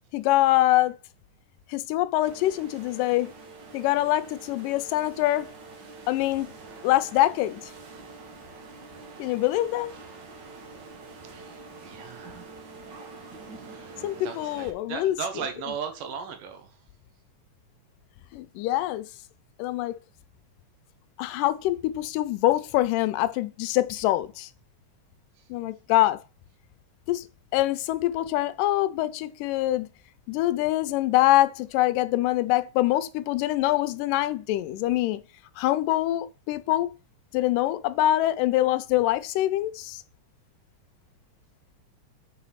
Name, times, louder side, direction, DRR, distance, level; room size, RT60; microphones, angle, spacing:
voice 1, 0.1-1.0 1.7-3.3 3.7-5.5 6.1-6.5 6.8-7.6 9.2-9.9 14.0-15.8 18.3-19.1 19.6-19.9 21.2-24.5 25.5-26.2 27.1-27.3 27.5-29.9 30.3-35.2 35.6-36.9 37.3-40.0, left 15 dB, 90° left, 2.2 m, -24 dB
sound 1, 2.2-14.7, right 3 dB, 60° right, 1.2 m, -45 dB
voice 2, 11.1-12.6 13.5-16.8 25.4-25.5, right 7 dB, 80° right, 2.7 m, -38 dB
6.2 x 4.2 x 5.6 m
omnidirectional pair, 3.7 m